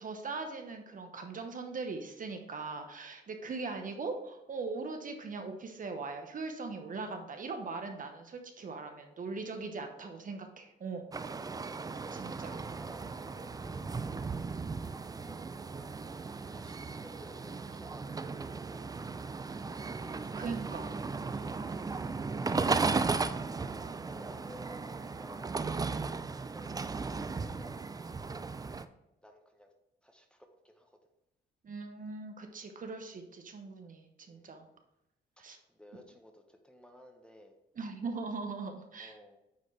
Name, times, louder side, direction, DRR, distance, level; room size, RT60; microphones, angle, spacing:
voice 1, 0.0-11.0 12.1-12.5 20.0-20.1 20.3-20.9 31.6-34.6 35.4-35.6 37.8-39.2, right 4 dB, 45° right, 5 dB, 1.0 m, -40 dB
sound 1, 11.1-28.9, right 4 dB, 20° right, 0.4 m, -36 dB
voice 2, 12.0-14.3 15.1-16.1 16.5-19.5 21.2-22.4 22.7-25.5 26.4-27.9 29.2-29.7 30.0-31.1 34.3-34.8 35.7-37.5 39.0-39.4, left 1 dB, 5° left, 4 dB, 1.0 m, -56 dB
9.4 x 4.2 x 3.3 m, 0.87 s
cardioid pair, 90°, 20 cm